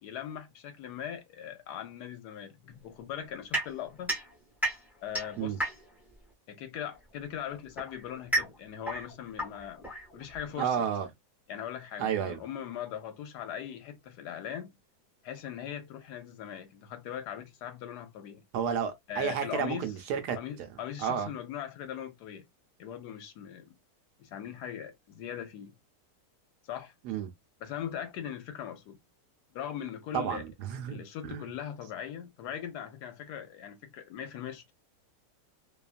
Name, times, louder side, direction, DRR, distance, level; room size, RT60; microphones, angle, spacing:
voice 1, 0.0-4.1 5.0-5.7 6.5-9.9 10.1-10.9 11.5-14.8 15.2-18.4 19.1-19.9 20.3-22.5 22.8-23.7 24.2-25.7 26.7-26.9 27.6-29.0 29.5-30.4 30.9-34.7, left 9 dB, 70° left, 1.1 m, -40 dB
sound 1, 3.5-6.1 7.1-10.5, right 1 dB, ahead, 0.6 m, -34 dB
voice 2, 10.6-11.1 12.0-12.4 18.5-20.7 21.0-21.3 27.0-27.3 30.1-31.5, right 8 dB, 75° right, 1.1 m, -32 dB
2.9 x 2.3 x 2.4 m
omnidirectional pair, 1.9 m